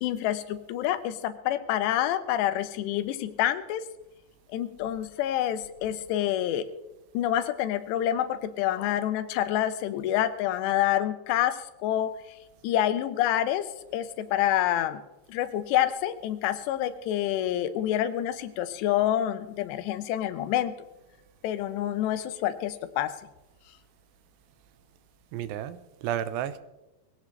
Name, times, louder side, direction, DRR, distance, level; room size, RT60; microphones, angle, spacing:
voice 1, 0.0-3.9 4.5-6.7 7.1-12.2 12.6-15.0 15.3-20.7 21.4-23.1, left 12 dB, 85° left, 2.9 m, -27 dB
voice 2, 25.3-26.6, right 10 dB, 80° right, 2.8 m, -32 dB
21.5 x 16.5 x 3.2 m
omnidirectional pair, 4.9 m